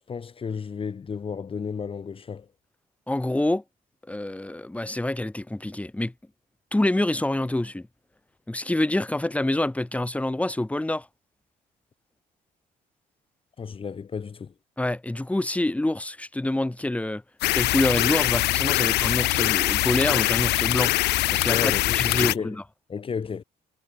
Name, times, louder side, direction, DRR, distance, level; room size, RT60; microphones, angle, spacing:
voice 1, 0.0-2.5 13.6-14.5 21.5-22.6 22.9-23.4, left 6 dB, 35° left, 2.6 m, -33 dB
voice 2, 3.1-3.6 4.1-6.1 6.7-7.9 8.5-11.1 14.8-17.2 17.5-20.9 21.3-22.6, left 1 dB, 10° left, 4.3 m, -26 dB
sound 1, 17.4-22.3, left 18 dB, 80° left, 0.9 m, -23 dB
cardioid pair, 110°, 17 cm